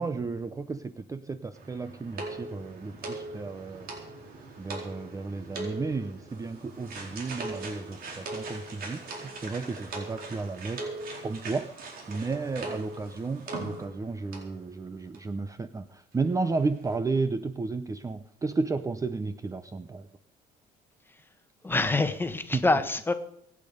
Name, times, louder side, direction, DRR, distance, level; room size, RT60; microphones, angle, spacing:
voice 1, 0.0-3.9 4.6-10.9 11.2-20.1 22.5-22.6, right 3 dB, 20° right, 12 dB, 0.7 m, -33 dB
sound 1, 1.5-14.1 14.3-14.5 15.1-15.2 15.5-15.6, right 2 dB, 60° right, 4.3 m, -40 dB
voice 2, 21.6-23.1, left 2 dB, 10° left, 9 dB, 1.4 m, -25 dB
23.5 x 8.8 x 5.2 m, 0.71 s
cardioid pair, 110°, 17 cm